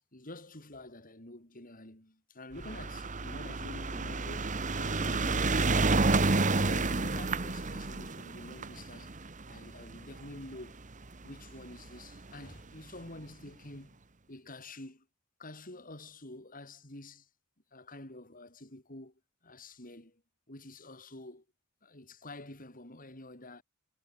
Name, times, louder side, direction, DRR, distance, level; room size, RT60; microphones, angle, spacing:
voice 1, 0.0-5.9 6.3-9.2 9.5-10.8 11.2-14.0 14.3-15.1 15.4-17.3 17.7-19.1 19.4-20.2 20.5-21.4 21.8-23.6, left 2 dB, 40° left, 6.0 m, -48 dB
sound 1, 2.6-11.0 11.9-12.0 12.2-12.3 12.5-12.6, right 3 dB, 40° right, 1.4 m, -30 dB
head